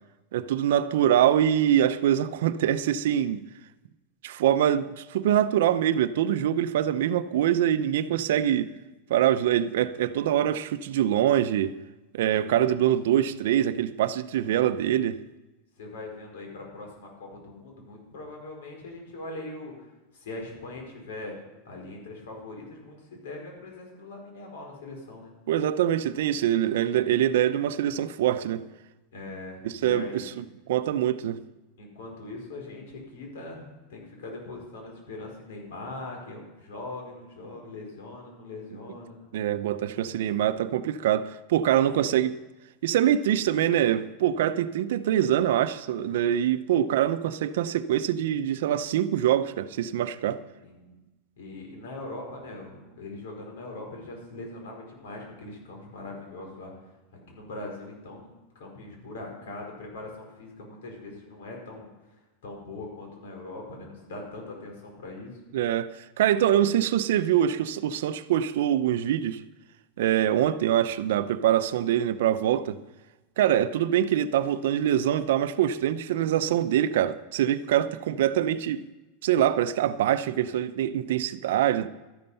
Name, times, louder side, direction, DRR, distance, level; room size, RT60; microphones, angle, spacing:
voice 1, 0.3-3.4 4.2-8.7 9.1-11.8 12.1-15.2 25.5-28.7 29.6-31.4 39.3-42.4 42.8-50.4 65.5-69.4 70.0-72.8 73.4-78.8 79.2-81.9, right 11 dB, 70° right, 0.6 m, -24 dB
voice 2, 12.6-12.9 15.8-19.7 20.1-21.4 21.6-25.3 29.1-30.3 31.8-39.2 50.5-50.9 51.4-56.7 57.3-58.3 58.5-61.9 62.4-65.4 66.6-66.7, left 2 dB, 85° left, 5.0 m, -41 dB
13.0 x 11.0 x 5.7 m
supercardioid pair, 175°, 0 cm